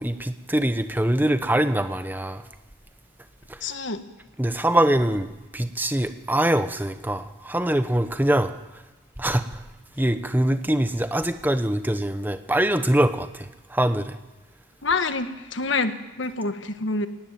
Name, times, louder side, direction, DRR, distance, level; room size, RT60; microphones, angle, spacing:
voice 1, 0.0-2.4 3.5-3.6 4.4-8.5 9.2-9.6 10.0-14.2, right 1 dB, 10° right, 10 dB, 0.9 m, -23 dB
voice 2, 3.6-4.0 14.8-17.1, left 3 dB, 75° left, 9 dB, 1.4 m, -27 dB
23.0 x 17.5 x 9.3 m, 1.1 s
head